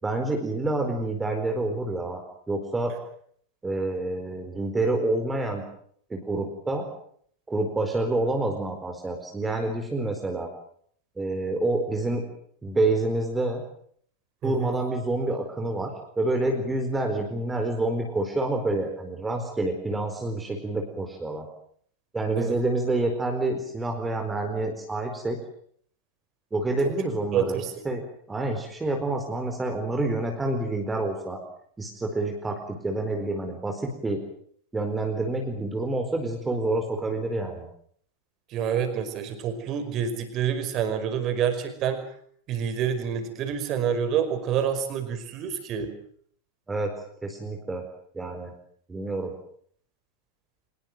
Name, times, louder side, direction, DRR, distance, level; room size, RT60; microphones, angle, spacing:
voice 1, 0.0-2.2 2.5-2.9 3.6-5.7 6.1-6.9 7.5-10.5 11.2-12.2 12.6-13.6 14.4-21.4 22.1-25.4 26.5-31.4 31.8-34.2 34.7-37.6 46.7-47.0 47.2-47.8 48.1-48.5 48.9-49.3, right 2 dB, 10° right, 4 dB, 4.5 m, -28 dB
voice 2, 14.4-14.8 22.4-22.6 27.3-27.9 38.5-42.0 42.5-45.9, right 8 dB, 35° right, 9 dB, 5.4 m, -27 dB
25.0 x 21.5 x 7.8 m, 0.63 s
figure-of-eight pair, 90°, 0 cm